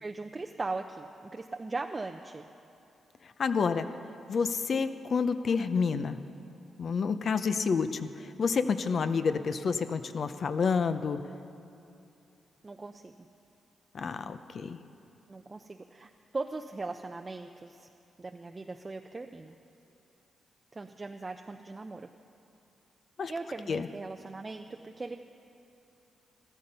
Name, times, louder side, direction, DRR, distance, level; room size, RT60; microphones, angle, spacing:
voice 1, 0.0-2.4 12.6-13.1 15.3-17.9 18.2-19.6 20.7-22.1 23.3-25.2, right 3 dB, 30° right, 5 dB, 0.5 m, -39 dB
voice 2, 3.4-3.9 4.3-6.2 6.8-11.2 13.9-14.8 23.2-23.3 23.7-23.9, left 5 dB, 60° left, 11 dB, 0.6 m, -29 dB
14.0 x 13.5 x 5.5 m, 2.7 s
cardioid pair, 65°, 0 cm